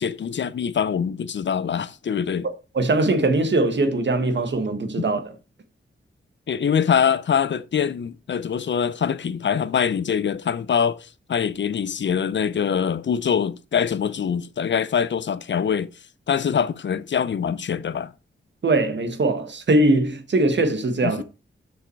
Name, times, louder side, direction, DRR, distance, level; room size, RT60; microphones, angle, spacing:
voice 1, 0.0-2.5 6.5-15.9 16.3-18.1 21.0-21.2, left 7 dB, 60° left, 0.6 m, -24 dB
voice 2, 2.4-5.3 18.6-21.2, right 2 dB, 60° right, 1.5 m, -21 dB
7.0 x 6.3 x 4.5 m
wide cardioid pair, 130°, 21 cm